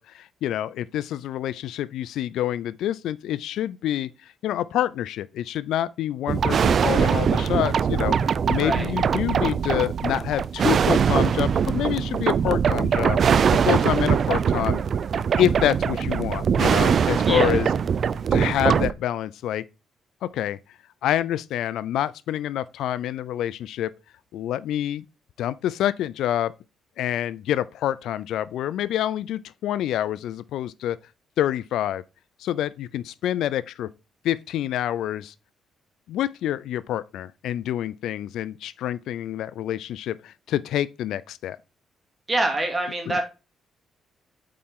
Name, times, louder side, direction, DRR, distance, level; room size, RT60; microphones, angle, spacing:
voice 1, 0.0-8.2 8.5-13.2 13.6-14.8 15.4-17.7 18.3-19.7 20.2-20.6 21.0-23.9 24.3-25.0 25.4-26.5 27.0-31.0 31.4-32.0 32.4-33.9 34.2-35.3 36.1-41.6 43.1-43.2, left 12 dB, 80° left, 0.3 m, -27 dB
sound 1, 6.3-18.9, right 7 dB, 55° right, 0.4 m, -22 dB
voice 2, 8.6-8.9 17.3-17.6 42.3-43.2, right 2 dB, 25° right, 2.4 m, -25 dB
8.6 x 4.3 x 3.6 m
cardioid pair, 90°, 0 cm